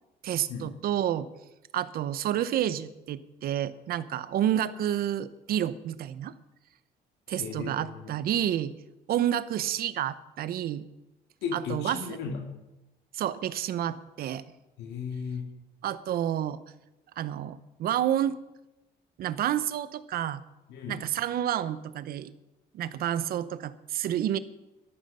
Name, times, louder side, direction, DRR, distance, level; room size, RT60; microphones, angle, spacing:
voice 1, 0.2-1.3 1.7-6.3 7.3-8.7 9.1-10.9 11.5-12.0 13.1-14.4 15.8-16.6 17.2-18.4 19.2-20.4 20.9-22.3 22.7-24.4, right 11 dB, 65° right, 15 dB, 0.8 m, -29 dB
voice 2, 7.3-8.2 11.4-12.5 14.8-15.5 20.7-21.1, left 6 dB, 85° left, 3 dB, 2.1 m, -36 dB
13.0 x 12.5 x 5.5 m, 0.99 s
cardioid pair, 110°, 17 cm